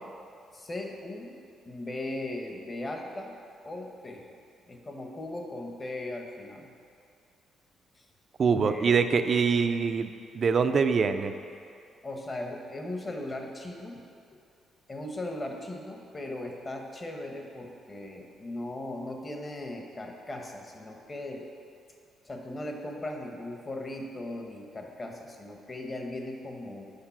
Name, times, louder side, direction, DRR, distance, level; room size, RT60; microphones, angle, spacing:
voice 1, 0.5-1.3 1.6-3.3 3.6-4.3 4.7-6.7 8.0-8.1 8.5-9.0 12.0-14.0 14.3-14.4 14.9-21.5 22.2-26.9, left 1 dB, 30° left, 2 dB, 1.0 m, -38 dB
voice 2, 8.4-10.1 10.3-11.3, right 5 dB, 45° right, 9 dB, 0.4 m, -24 dB
6.6 x 5.4 x 5.8 m, 2.4 s
cardioid pair, 90°, 0 cm